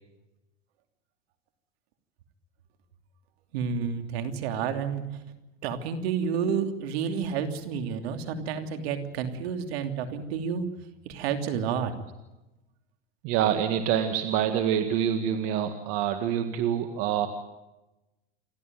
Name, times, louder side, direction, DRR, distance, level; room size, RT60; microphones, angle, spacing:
voice 1, 3.5-5.2 5.6-10.7 11.0-11.9, right 7 dB, 65° right, 7 dB, 3.1 m, -30 dB
voice 2, 13.2-17.3, right 9 dB, 45° right, 8 dB, 1.8 m, -26 dB
28.5 x 12.5 x 9.2 m, 1.0 s
supercardioid pair, 145°, 33 cm